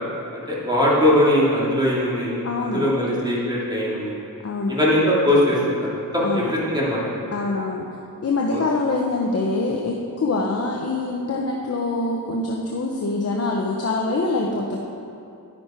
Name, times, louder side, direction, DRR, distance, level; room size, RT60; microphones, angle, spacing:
voice 1, 0.3-4.2 4.7-7.0 8.5-8.6, left 1 dB, 10° right, -7 dB, 2.8 m, -21 dB
voice 2, 2.4-2.8 4.4-4.8 6.2-6.5 7.3-7.8 8.2-14.8, left 3 dB, 45° left, 0 dB, 0.8 m, -24 dB
10.5 x 10.5 x 4.4 m, 2.6 s
wide cardioid pair, 125°, 36 cm